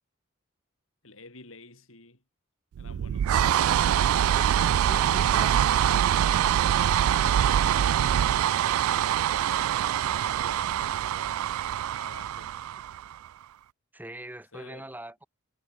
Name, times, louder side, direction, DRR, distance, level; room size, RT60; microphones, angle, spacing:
voice 1, 1.0-2.2 2.8-3.8 7.1-11.7 12.0-12.6 14.5-14.9, left 3 dB, 70° left, 6.5 m, -49 dB
sound 1, 2.7-13.3, right 10 dB, 80° right, 0.3 m, -24 dB
voice 2, 4.3-6.1 13.9-15.3, right 1 dB, 10° right, 5.4 m, -42 dB
head